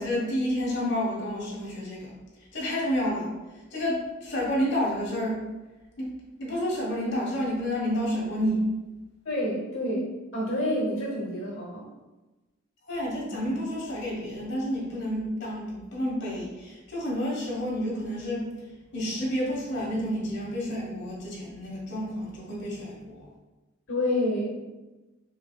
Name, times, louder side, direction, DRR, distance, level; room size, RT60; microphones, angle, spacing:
voice 1, 0.0-2.1 2.5-3.3 3.7-5.4 6.0-6.1 6.4-8.7 12.9-18.5 18.9-23.3, equal, 60° left, -5 dB, 1.3 m, -30 dB
voice 2, 9.2-10.1 10.3-11.8 13.2-13.3 23.9-24.6, left 1 dB, 90° left, -3 dB, 0.9 m, -28 dB
5.1 x 3.2 x 2.3 m, 1.1 s
head